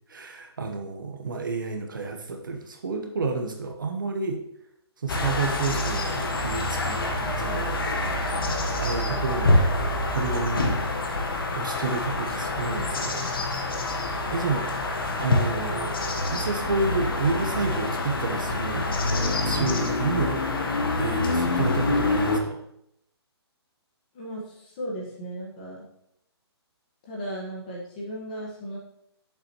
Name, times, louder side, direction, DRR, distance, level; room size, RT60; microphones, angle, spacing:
voice 1, 0.1-4.4 5.0-9.6 10.1-10.8 11.5-13.2 14.3-14.7 15.2-16.0 16.3-18.9 19.4-20.4 21.0-22.6, right 3 dB, 50° right, 4 dB, 1.0 m, -30 dB
sound 1, 5.1-22.4, left 2 dB, 55° left, 1.2 m, -26 dB
voice 2, 24.1-25.9 27.1-28.8, equal, 20° left, -4 dB, 1.4 m, -36 dB
8.4 x 7.0 x 3.0 m, 0.76 s
hypercardioid pair, 180°, 14 cm